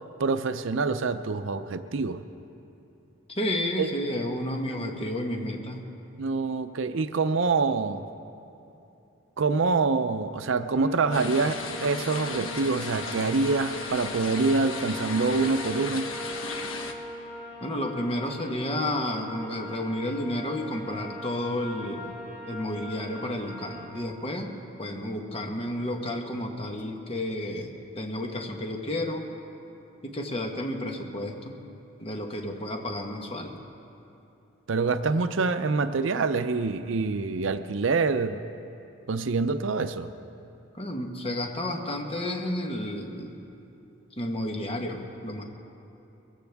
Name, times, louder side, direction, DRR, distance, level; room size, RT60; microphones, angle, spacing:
voice 1, 0.2-2.2 3.8-3.9 6.2-8.1 9.4-16.1 34.7-38.4 39.1-40.1, right 4 dB, 70° right, 11 dB, 0.5 m, -26 dB
voice 2, 3.3-5.8 17.6-22.1 22.5-24.5 24.8-29.3 30.0-31.6 32.0-33.6 40.7-43.4 44.2-45.4, left 1 dB, 30° left, 3 dB, 1.3 m, -31 dB
sound 1, 10.7-23.9, equal, 50° left, 3.5 m, -41 dB
sound 2, 11.1-16.9, left 4 dB, 85° left, 1.1 m, -36 dB
22.5 x 15.0 x 3.5 m, 2.8 s
head